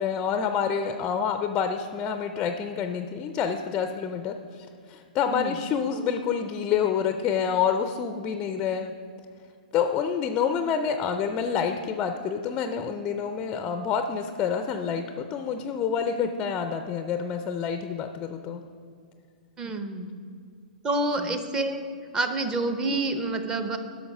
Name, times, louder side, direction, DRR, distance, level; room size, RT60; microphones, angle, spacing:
voice 1, 0.0-8.9 9.7-18.6 21.2-21.3, left 7 dB, 20° left, 7 dB, 0.4 m, -28 dB
voice 2, 19.6-20.1 20.8-21.8 22.1-23.8, right 2 dB, 15° right, 7 dB, 0.7 m, -28 dB
11.0 x 6.4 x 5.3 m, 2.3 s
hypercardioid pair, 145°, 5 cm